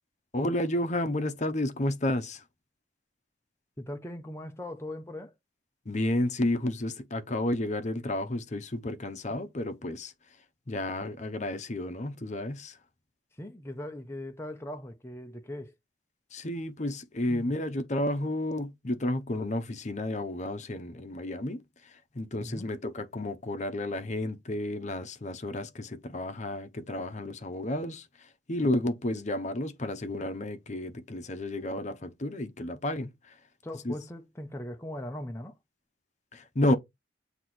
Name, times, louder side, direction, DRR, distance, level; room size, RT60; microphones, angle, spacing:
voice 1, 0.3-2.4 5.9-10.1 10.7-12.8 16.3-33.4 33.8-33.9 36.3-36.7, left 1 dB, 40° left, 0.8 m, -31 dB
voice 2, 3.8-5.3 13.4-15.7 22.4-22.7 33.6-35.6, left 1 dB, 15° left, 0.7 m, -39 dB
7.8 x 3.0 x 4.3 m
head